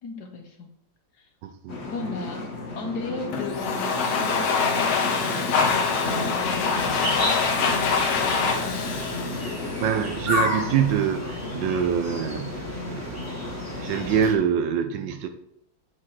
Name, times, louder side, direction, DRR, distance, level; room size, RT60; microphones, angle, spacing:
voice 1, 0.0-0.7 1.1-1.3 1.8-2.5 2.8-7.6 8.2-8.8, left 3 dB, 60° left, 4 dB, 1.3 m, -37 dB
voice 2, 1.4-1.8 9.8-13.4 13.8-15.3, right 8 dB, 70° right, 8 dB, 1.2 m, -25 dB
sound 1, 1.7-14.3, left 3 dB, 45° left, 1.0 m, -34 dB
Domestic sounds home sounds, 3.3-10.2, left 5 dB, 80° left, 1.8 m, -25 dB
sound 2, 6.5-14.3, equal, 10° right, 1.2 m, -33 dB
8.7 x 4.7 x 4.2 m, 0.80 s
omnidirectional pair, 2.2 m